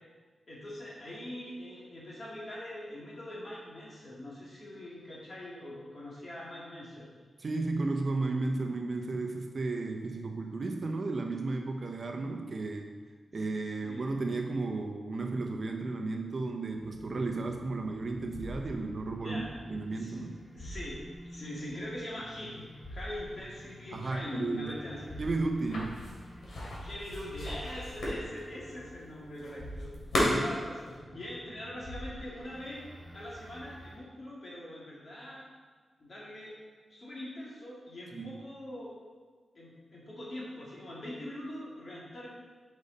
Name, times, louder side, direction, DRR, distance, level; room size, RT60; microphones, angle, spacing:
voice 1, 0.5-7.1 13.3-13.5 13.8-14.0 19.2-19.5 20.0-20.3 20.5-21.0 21.3-25.0 26.8-29.9 30.4-35.5 36.0-36.5 36.9-38.9 39.5-42.3, left 1 dB, 45° left, -6 dB, 2.4 m, -42 dB
voice 2, 7.4-12.9 13.3-20.4 23.9-24.7 25.2-26.1 30.2-30.5 38.1-38.4, right 3 dB, 45° right, 4 dB, 0.6 m, -34 dB
sound 1, 16.6-34.0, equal, 15° left, 1.8 m, -47 dB
sound 2, 25.7-31.0, left 1 dB, 70° left, 2.3 m, -34 dB
9.0 x 5.4 x 4.0 m, 1.5 s
wide cardioid pair, 150°, 0 cm